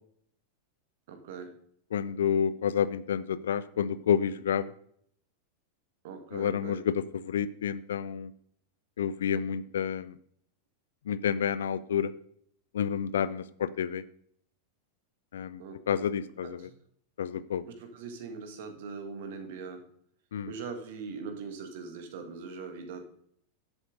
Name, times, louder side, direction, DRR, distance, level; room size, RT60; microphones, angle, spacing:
voice 1, 1.1-1.6 6.0-6.8 15.6-16.1 16.4-16.7 17.7-19.8 20.5-23.0, right 5 dB, 55° right, 7 dB, 1.9 m, -41 dB
voice 2, 1.9-4.7 6.3-8.3 9.0-10.1 11.1-12.1 12.7-14.0 15.3-16.6 17.2-17.6 20.3-20.5, left 8 dB, 65° left, 16 dB, 0.5 m, -29 dB
11.0 x 7.9 x 3.8 m, 0.65 s
figure-of-eight pair, 90°, 0 cm